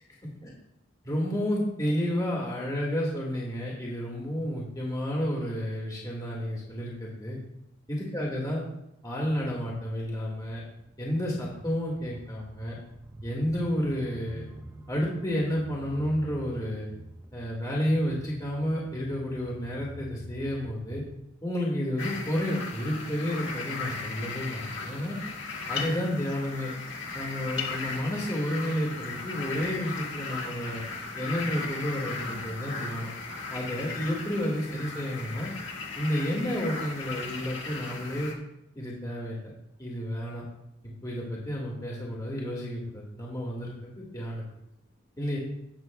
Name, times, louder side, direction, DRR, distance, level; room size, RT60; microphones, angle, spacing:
voice 1, 1.0-7.4 7.9-8.6 9.0-10.6 11.0-12.8 13.2-14.5 14.9-16.9 17.3-21.0 21.4-25.2 25.7-26.7 27.1-30.8 31.2-33.1 33.5-35.5 36.0-38.3 38.8-39.5 39.8-40.4 41.0-44.4 45.2-45.4, equal, 20° left, -3 dB, 1.8 m, -31 dB
sound 1, 10.7-21.2, right 1 dB, 15° right, 0.5 m, -47 dB
sound 2, 22.0-38.3, left 4 dB, 65° left, 1.7 m, -37 dB
17.0 x 7.0 x 2.3 m, 0.83 s
head